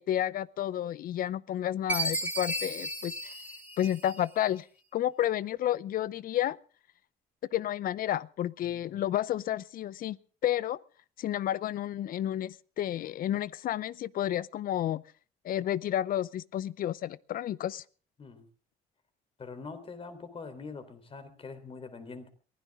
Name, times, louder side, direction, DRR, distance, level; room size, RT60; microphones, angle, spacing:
voice 1, 0.0-3.3 3.8-4.7 4.9-6.6 7.5-10.2 10.4-10.8 11.2-15.0 15.4-17.8, left 12 dB, 55° left, 0.7 m, -31 dB
Chime, 1.9-4.4, right 1 dB, 10° right, 3.8 m, -34 dB
voice 2, 8.6-9.0 18.2-18.4 19.4-22.3, left 4 dB, 35° left, 3.7 m, -44 dB
23.0 x 16.5 x 3.7 m
cardioid pair, 110°, 17 cm